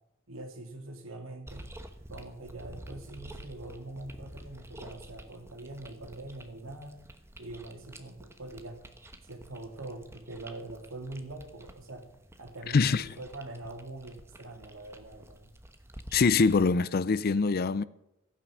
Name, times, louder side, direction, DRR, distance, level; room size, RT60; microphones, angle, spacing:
voice 1, 0.3-1.7 2.1-7.0 7.4-8.8 9.2-12.1 12.4-15.5, right 2 dB, 70° right, 2.7 m, -43 dB
sound 1, 1.5-16.7, right 1 dB, 15° right, 1.1 m, -50 dB
voice 2, 12.7-13.1 16.1-17.8, left 4 dB, 50° left, 0.5 m, -24 dB
15.0 x 9.4 x 6.3 m
head